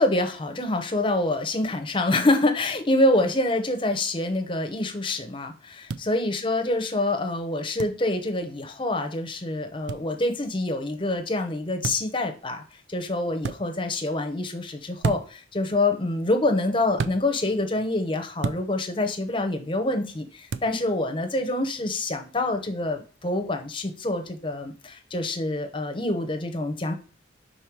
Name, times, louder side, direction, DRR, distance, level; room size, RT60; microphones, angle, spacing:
voice 1, 0.0-12.6 12.9-26.9, left 2 dB, 25° left, 5 dB, 0.9 m, -26 dB
sound 1, 5.9-6.0 7.8-8.0 9.9-10.0 11.8-12.1 13.4-13.6 15.0-15.4 17.0-17.2 18.4-18.6 20.5-20.7, right 4 dB, 75° right, 0.4 m, -29 dB
5.5 x 4.1 x 4.6 m, 0.37 s
head